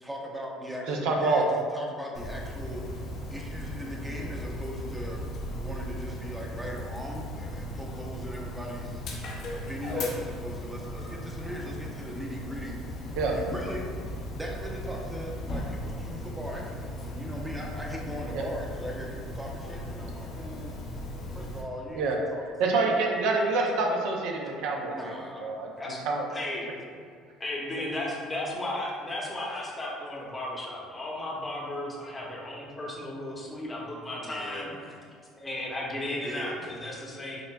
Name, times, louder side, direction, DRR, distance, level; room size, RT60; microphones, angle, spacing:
voice 1, 0.0-2.8 3.3-5.2 5.6-9.0 9.5-13.9 14.3-20.7 21.3-22.4 24.9-25.6 34.2-35.0 36.2-36.8, equal, 10° right, -1 dB, 0.7 m, -39 dB
voice 2, 0.9-1.4 13.2-13.3 18.3-18.4 22.0-22.2 22.6-24.9 25.4-25.7 26.1-26.2, right 3 dB, 70° right, 0 dB, 0.5 m, -26 dB
Dog, 2.1-21.6, left 1 dB, 60° left, 0.6 m, -37 dB
voice 3, 26.3-26.6 27.4-34.7 35.4-37.4, left 1 dB, 25° left, -3 dB, 0.8 m, -35 dB
5.9 x 2.2 x 2.3 m, 2.1 s
hypercardioid pair, 70°, 0 cm